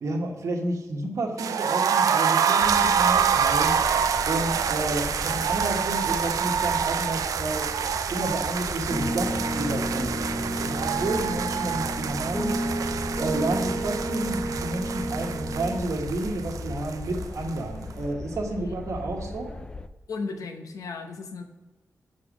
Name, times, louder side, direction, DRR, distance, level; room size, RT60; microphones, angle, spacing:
voice 1, 0.0-3.8 4.2-7.7 8.1-12.5 13.2-19.5, right 2 dB, 60° right, 2 dB, 1.2 m, -30 dB
sound 1, 1.4-17.2 17.5-17.6 17.9-18.0, right 7 dB, 90° right, 0.4 m, -26 dB
sound 2, 2.6-19.9, left 2 dB, 15° left, 0.3 m, -38 dB
Piano, 8.9-15.8, right 1 dB, 5° right, 0.8 m, -31 dB
voice 2, 20.1-21.4, left 4 dB, 80° left, 5 dB, 0.8 m, -35 dB
6.7 x 4.1 x 5.0 m, 1.2 s
wide cardioid pair, 130°, 6 cm